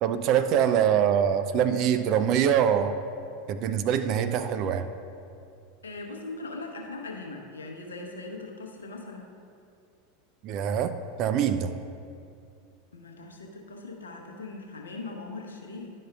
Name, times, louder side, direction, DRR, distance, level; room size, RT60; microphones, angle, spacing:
voice 1, 0.0-3.0 3.5-4.9 10.4-10.9 11.2-11.7, right 9 dB, 45° right, 10 dB, 0.3 m, -24 dB
voice 2, 5.8-9.3 12.9-15.9, left 3 dB, 75° left, 2 dB, 0.7 m, -40 dB
10.5 x 5.4 x 2.3 m, 2.5 s
figure-of-eight pair, 85°, 0 cm